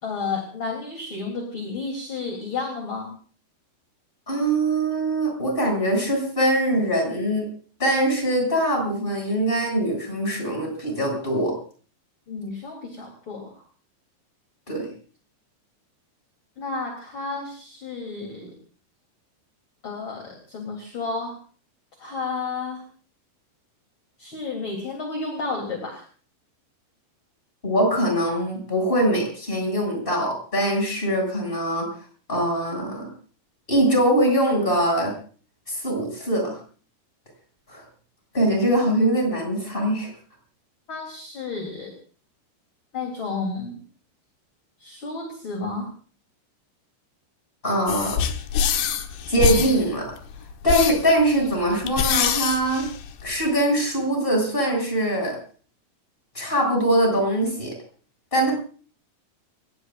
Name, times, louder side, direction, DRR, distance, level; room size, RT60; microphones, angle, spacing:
voice 1, 0.0-3.1 12.3-13.6 16.6-18.6 19.8-21.4 22.0-22.8 24.2-26.0 40.9-41.9 42.9-43.8 44.8-45.9, left 4 dB, 30° left, 1 dB, 3.5 m, -31 dB
voice 2, 4.3-7.5 7.8-11.5 14.7-14.9 27.6-31.9 32.3-33.0 33.7-35.1 35.7-36.5 37.7-37.8 38.3-40.1 47.6-48.2 49.3-50.0 50.6-52.9 53.2-55.4 56.3-57.7 58.3-58.5, right 1 dB, 10° left, 0 dB, 7.0 m, -22 dB
sound 1, 47.9-53.5, left 8 dB, 75° left, 3.5 m, -25 dB
30.0 x 17.5 x 2.6 m, 0.42 s
omnidirectional pair, 5.2 m